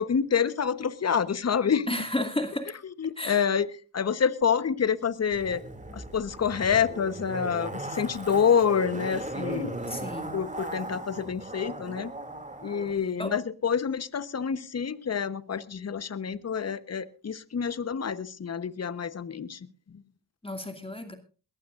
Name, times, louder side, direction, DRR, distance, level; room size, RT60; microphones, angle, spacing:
voice 1, 0.0-1.9 3.0-3.7 3.9-5.6 5.9-9.7 10.3-12.1 12.6-19.6, left 7 dB, 40° left, 15 dB, 1.1 m, -27 dB
voice 2, 1.9-2.7 3.2-3.5 9.9-10.4 13.2-13.3 20.4-21.1, left 1 dB, 15° left, 6 dB, 2.3 m, -32 dB
Zipper (clothing), 5.3-12.9 13.2-13.3, right 2 dB, 15° right, 2.7 m, -37 dB
21.5 x 15.0 x 2.6 m, 0.35 s
supercardioid pair, 55°, 41 cm